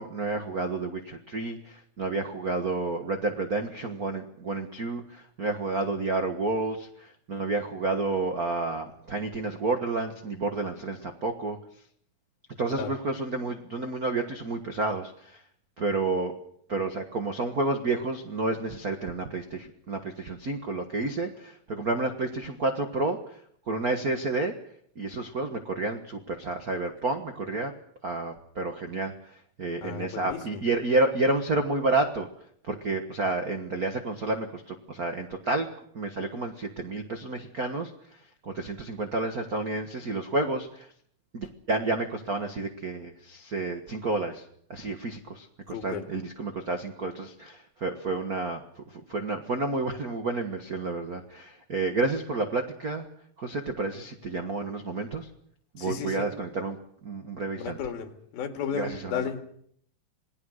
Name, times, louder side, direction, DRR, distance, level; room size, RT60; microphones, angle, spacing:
voice 1, 0.0-11.6 12.6-15.4 15.8-16.3 16.7-23.4 23.7-24.5 24.9-27.7 28.0-32.3 32.7-35.7 35.9-37.9 38.4-40.9 41.3-44.4 44.7-53.0 53.4-55.3 55.7-56.8 57.0-57.8 58.8-59.3, right 3 dB, 75° right, 6 dB, 0.8 m, -30 dB
voice 2, 29.8-30.6 45.7-46.1 55.8-56.3 57.6-59.4, left 7 dB, 80° left, 6 dB, 3.9 m, -34 dB
27.5 x 19.0 x 6.5 m, 0.66 s
omnidirectional pair, 4.2 m